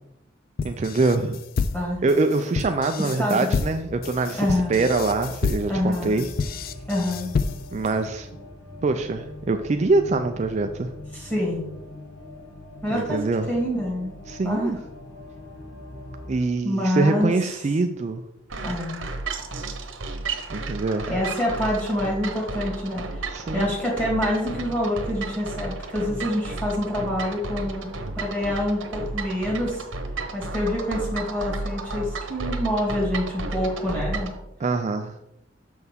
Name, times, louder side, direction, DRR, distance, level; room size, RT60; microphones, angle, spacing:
sound 1, 0.6-7.9, left 5 dB, 50° left, 0.3 m, -29 dB
voice 1, 0.6-1.4 2.0-6.3 7.7-8.3 8.8-10.9 12.9-13.5 14.3-14.8 16.3-18.2 20.5-21.1 23.3-23.7 34.6-35.1, right 3 dB, 35° right, 7 dB, 0.3 m, -24 dB
sound 2, 3.7-16.3, left 1 dB, 65° left, 1.2 m, -42 dB
voice 2, 4.4-4.8 5.7-6.2 6.9-7.3 11.1-11.7 12.8-14.2 14.4-14.7 16.6-17.3 18.6-19.0 21.1-27.9 28.2-29.8 30.3-34.3, left 1 dB, 10° left, -4 dB, 2.5 m, -26 dB
sound 3, 18.5-34.4, right 3 dB, 85° right, 1.0 m, -33 dB
6.7 x 6.3 x 3.6 m, 0.83 s
head